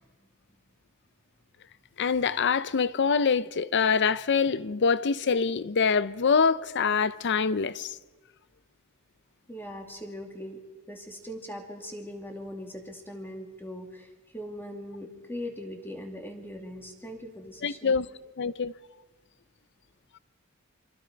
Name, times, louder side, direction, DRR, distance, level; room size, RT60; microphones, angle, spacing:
voice 1, 2.0-7.9 17.6-18.1 18.4-18.7, left 5 dB, 55° left, 0.6 m, -25 dB
voice 2, 9.5-10.6 10.9-18.0, equal, 10° left, 2.5 m, -40 dB
27.0 x 25.0 x 5.2 m
head